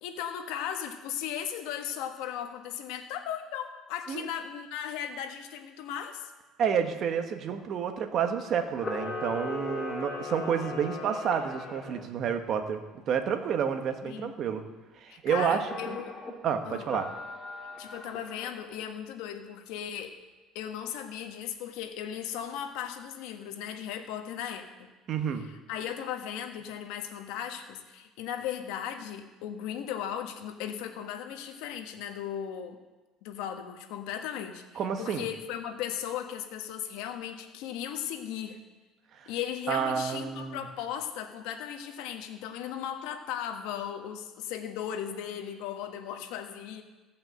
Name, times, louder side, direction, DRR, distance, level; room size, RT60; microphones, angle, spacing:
voice 1, 0.0-6.3 14.0-14.4 15.1-16.2 16.6-16.9 17.8-20.1 20.5-24.9 25.3-32.8 33.2-38.6 39.3-46.8, left 9 dB, 80° left, 5 dB, 1.2 m, -37 dB
voice 2, 6.6-12.8 13.1-14.6 15.0-16.0 16.4-17.0 25.1-25.5 34.8-35.2 39.2-39.3 39.7-40.6, right 7 dB, 45° right, 6 dB, 1.2 m, -29 dB
Camera, 8.7-12.0 15.6-16.3 16.8-18.7, left 3 dB, 25° left, 2.4 m, -38 dB
15.0 x 5.7 x 7.8 m, 1.2 s
cardioid pair, 125°, 0 cm